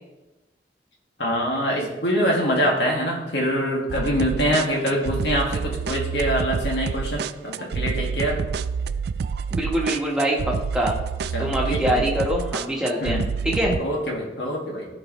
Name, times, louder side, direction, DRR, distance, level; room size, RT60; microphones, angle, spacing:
voice 1, 1.2-8.4 11.3-12.1 13.0-13.3 13.8-14.9, equal, 75° left, -2 dB, 2.0 m, -24 dB
sound 1, 3.9-13.8, right 5 dB, 65° right, 0.3 m, -28 dB
voice 2, 9.5-11.0 11.4-13.7, equal, 5° right, -3 dB, 1.4 m, -24 dB
14.5 x 4.8 x 3.1 m, 1.1 s
head